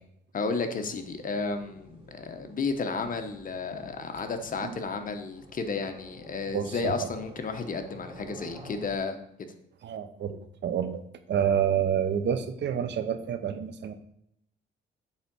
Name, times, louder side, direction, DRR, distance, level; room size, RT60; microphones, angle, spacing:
voice 1, 0.3-9.5, left 4 dB, 45° left, 7 dB, 1.1 m, -32 dB
sound 1, 0.7-8.9, equal, 25° right, 2.6 m, -50 dB
voice 2, 6.5-6.9 9.8-11.0 11.3-13.9, right 8 dB, 65° right, 10 dB, 0.9 m, -28 dB
8.7 x 3.8 x 6.2 m, 0.74 s
cardioid pair, 90°, 20 cm